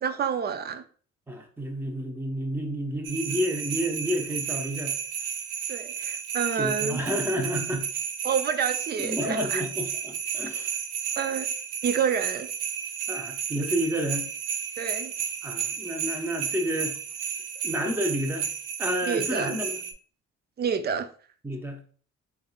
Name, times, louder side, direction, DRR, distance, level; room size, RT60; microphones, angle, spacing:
voice 1, 0.0-0.8 5.7-7.0 8.2-9.6 11.2-11.5 11.8-12.5 14.8-15.1 19.1-19.6 20.6-21.1, right 7 dB, 35° right, 0.5 m, -28 dB
voice 2, 1.3-4.9 6.5-7.9 9.0-10.8 13.1-14.3 15.4-17.0 17.6-18.5 18.8-19.8 21.4-21.8, equal, 5° right, 0.8 m, -30 dB
sound 1, 3.0-19.9, right 8 dB, 90° right, 0.5 m, -32 dB
4.0 x 3.6 x 2.3 m
cardioid pair, 90°, 30 cm